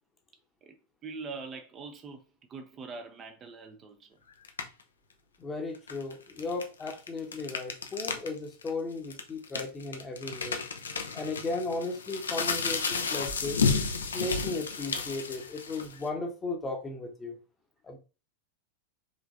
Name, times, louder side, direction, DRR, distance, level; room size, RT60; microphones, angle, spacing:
voice 1, 1.0-4.2, right 4 dB, 25° right, 0.6 m, -43 dB
sound 1, 4.4-4.8 5.7-8.3 8.6-8.7 9.1-16.1, left 5 dB, 70° left, 0.6 m, -32 dB
voice 2, 5.4-10.6 11.1-13.6 14.1-17.4 17.8-18.0, left 3 dB, 20° left, 0.9 m, -35 dB
5.1 x 3.3 x 2.6 m
figure-of-eight pair, 90°, 0 cm